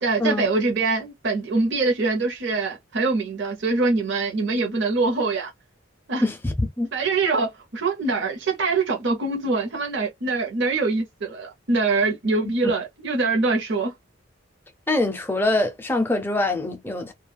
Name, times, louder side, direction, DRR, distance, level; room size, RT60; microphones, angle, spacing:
voice 1, 0.0-5.5 6.1-6.2 6.9-13.9, right 3 dB, 55° right, 0.8 m, -24 dB
voice 2, 6.2-6.9 12.4-12.5 14.9-17.1, left 2 dB, 10° left, 0.5 m, -24 dB
2.4 x 2.3 x 3.3 m
head